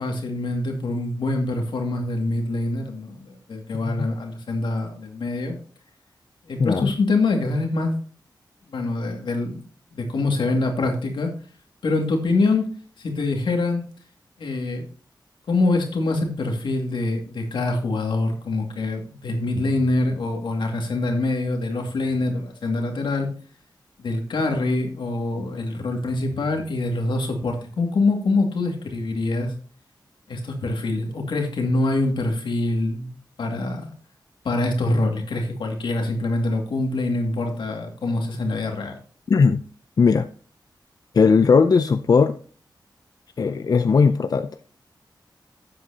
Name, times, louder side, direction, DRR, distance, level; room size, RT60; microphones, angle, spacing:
voice 1, 0.0-5.6 6.5-8.0 8.7-9.6 9.9-11.3 11.8-12.7 13.0-13.8 14.4-14.9 15.5-23.3 24.0-29.5 30.3-33.9 34.4-39.0, left 2 dB, 85° left, 2 dB, 2.3 m, -25 dB
voice 2, 6.6-6.9 39.3-39.6 40.0-40.3 41.1-42.4 43.4-44.5, left 5 dB, 55° left, 9 dB, 0.5 m, -18 dB
12.5 x 7.8 x 2.8 m, 0.42 s
wide cardioid pair, 90°, 8 cm